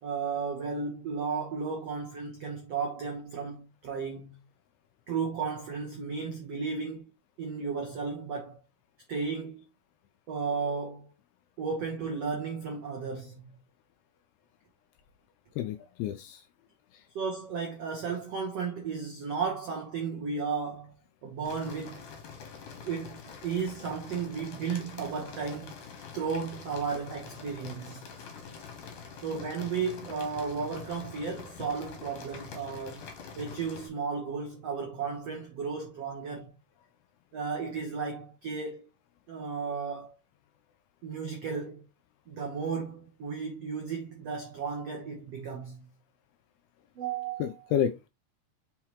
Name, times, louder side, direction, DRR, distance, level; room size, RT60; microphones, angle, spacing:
voice 1, 0.0-4.4 5.1-7.0 7.4-8.6 9.1-9.6 10.3-11.1 11.6-13.4 17.1-20.9 21.2-22.0 22.8-25.8 26.1-28.0 29.2-33.1 33.4-36.6 37.3-38.9 39.3-40.1 41.0-41.9 42.3-45.8 46.9-47.7, right 5 dB, 80° right, 1.4 m, -34 dB
voice 2, 15.6-16.4 47.4-48.1, left 9 dB, 85° left, 2.2 m, -30 dB
sound 1, 21.4-33.9, left 6 dB, 55° left, 2.6 m, -45 dB
5.7 x 5.7 x 3.0 m
omnidirectional pair, 4.9 m